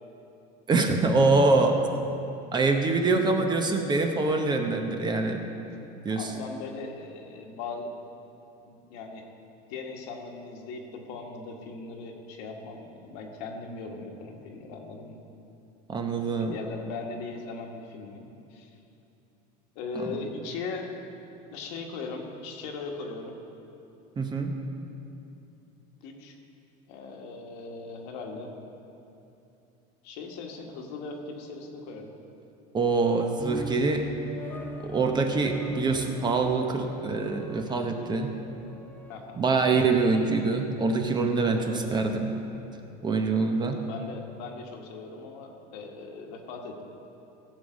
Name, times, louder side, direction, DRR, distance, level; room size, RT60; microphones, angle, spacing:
voice 1, 0.7-1.8 2.5-5.4 6.0-6.3 15.9-16.5 20.1-20.2 24.2-24.5 32.7-34.1 34.8-38.3 39.4-42.3 43.0-43.8, right 3 dB, 20° right, 4 dB, 0.9 m, -24 dB
voice 2, 3.0-3.6 6.1-7.9 8.7-9.2 9.7-15.2 16.3-18.7 19.7-20.9 21.5-23.4 26.0-26.4 26.9-28.5 30.0-32.1 39.1-39.4 41.4-41.9 43.8-46.8, left 4 dB, 70° left, 2 dB, 1.6 m, -39 dB
sound 1, 33.4-40.7, equal, 10° left, 0.8 m, -40 dB
15.5 x 7.1 x 5.1 m, 2.8 s
supercardioid pair, 130°, 20 cm